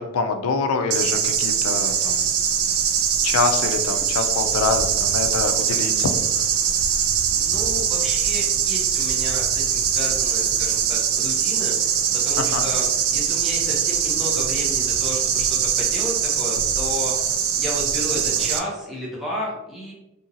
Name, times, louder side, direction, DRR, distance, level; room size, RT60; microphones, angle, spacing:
voice 1, 0.0-2.3 2.6-2.7 3.2-6.1 12.4-12.7, left 4 dB, 75° left, 7 dB, 0.4 m, -25 dB
sound 1, 0.9-18.6, right 8 dB, 65° right, 0.3 m, -22 dB
voice 2, 7.4-12.9 13.1-19.9, equal, ahead, -6 dB, 0.6 m, -32 dB
2.8 x 2.7 x 2.6 m, 0.95 s
head